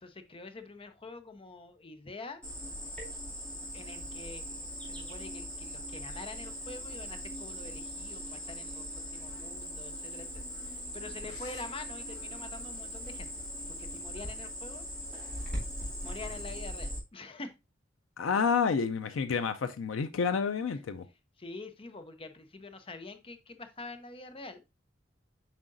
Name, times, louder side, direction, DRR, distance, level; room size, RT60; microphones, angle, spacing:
voice 1, 0.0-2.4 3.7-13.3 13.7-14.9 16.0-17.5 21.4-24.6, left 3 dB, 30° left, 0.6 m, -46 dB
Cricket, 2.4-17.0, equal, 5° left, 2.5 m, -40 dB
voice 2, 18.2-21.0, left 5 dB, 90° left, 0.4 m, -29 dB
7.4 x 4.9 x 2.6 m
head